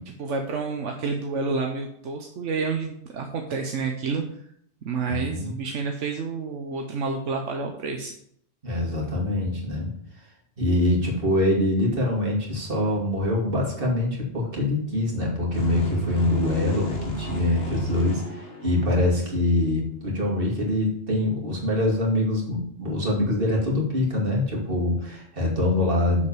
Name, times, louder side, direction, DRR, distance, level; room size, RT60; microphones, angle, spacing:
voice 1, 0.0-4.2 4.8-8.2, right 4 dB, 80° right, 3 dB, 1.2 m, -29 dB
voice 2, 5.1-5.5 8.6-9.9 10.6-26.3, left 1 dB, 50° right, -2 dB, 2.6 m, -24 dB
sound 1, 15.5-19.3, right 2 dB, 75° left, 2.1 m, -32 dB
7.0 x 5.0 x 7.0 m, 0.67 s
omnidirectional pair, 1.2 m